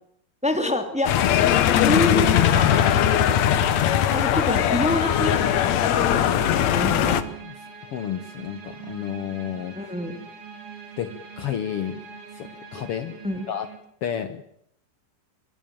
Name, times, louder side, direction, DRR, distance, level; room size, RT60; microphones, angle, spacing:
voice 1, 0.4-1.1 1.7-3.0 4.1-7.2 9.8-10.2 13.2-13.5, left 1 dB, ahead, 7 dB, 1.9 m, -27 dB
sound 1, 1.0-7.2, left 10 dB, 65° left, 1.9 m, -20 dB
sound 2, 2.2-13.8, right 7 dB, 80° right, 5.4 m, -43 dB
voice 2, 7.9-9.8 11.0-12.0 12.3-13.2 13.5-13.7 14.0-14.5, left 9 dB, 85° left, 10 dB, 1.2 m, -31 dB
24.0 x 18.5 x 9.0 m, 0.72 s
omnidirectional pair, 4.2 m